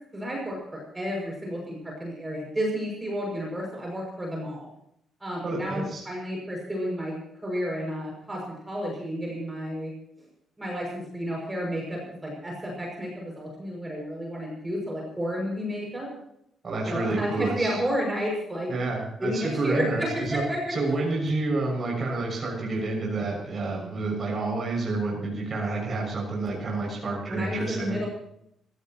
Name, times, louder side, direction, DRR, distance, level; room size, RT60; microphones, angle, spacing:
voice 1, 0.1-4.7 5.2-9.9 10.6-16.1 16.9-18.7 19.2-20.8 27.3-28.1, equal, 10° right, -2 dB, 6.4 m, -31 dB
voice 2, 5.4-6.0 16.6-17.8 18.7-20.4 20.7-28.0, right 3 dB, 30° right, -2 dB, 6.6 m, -29 dB
26.0 x 16.5 x 3.1 m, 0.75 s
cardioid pair, 170°, 0 cm